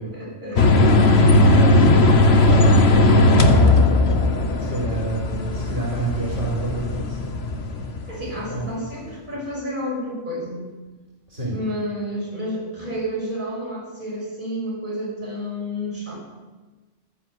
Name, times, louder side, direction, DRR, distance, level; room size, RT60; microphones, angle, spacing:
voice 1, 0.1-1.0 8.1-10.6 11.5-16.2, equal, 40° right, -5 dB, 6.4 m, -30 dB
sound 1, 0.6-8.6, left 2 dB, 60° left, 1.5 m, -17 dB
voice 2, 0.7-3.8 4.6-7.2 7.6-7.9 8.5-8.8 11.3-11.6, right 2 dB, 75° right, -5 dB, 4.6 m, -29 dB
14.0 x 10.0 x 8.0 m, 1.3 s
omnidirectional pair, 1.2 m